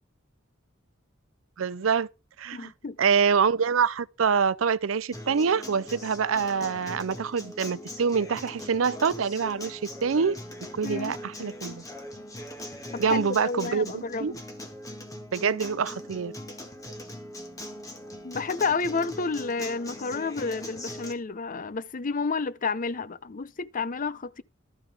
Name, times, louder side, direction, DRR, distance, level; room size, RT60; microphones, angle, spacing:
voice 1, 1.6-2.1 2.4-2.7 3.0-10.4 10.7-11.8 13.0-14.3 15.3-16.3, right 6 dB, 80° right, 0.5 m, -25 dB
voice 2, 2.5-3.0 10.8-11.2 12.9-14.4 18.2-24.4, left 4 dB, 40° left, 0.6 m, -30 dB
Acoustic guitar, 5.1-21.1, left 1 dB, 15° left, 1.6 m, -41 dB
13.0 x 8.8 x 3.5 m
head